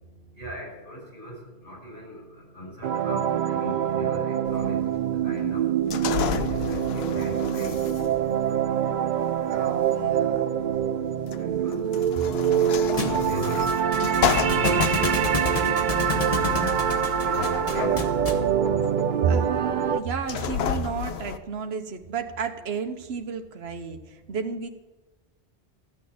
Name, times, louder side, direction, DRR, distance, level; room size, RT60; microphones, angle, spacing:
voice 1, 0.0-9.6 10.6-19.3 24.2-24.4, left 1 dB, 65° left, -5 dB, 6.1 m, -40 dB
sound 1, 2.8-20.0, right 9 dB, 55° right, 0.6 m, -25 dB
sound 2, 4.5-21.4, left 8 dB, 80° left, 1.0 m, -33 dB
voice 2, 9.5-10.5 19.2-24.7, right 6 dB, 80° right, 6 dB, 1.2 m, -31 dB
Thump thud, 13.0-18.5, left 3 dB, 35° left, 1.2 m, -30 dB
14.0 x 6.3 x 9.4 m, 1.1 s
omnidirectional pair, 1.0 m